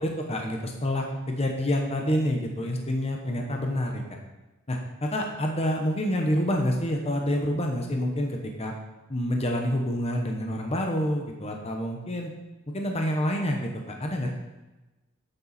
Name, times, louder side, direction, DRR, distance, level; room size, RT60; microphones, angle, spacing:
voice 1, 0.0-4.0 4.7-8.7 9.1-12.3 12.7-14.3, equal, 30° left, 2 dB, 0.9 m, -27 dB
8.6 x 8.3 x 4.2 m, 1.1 s
head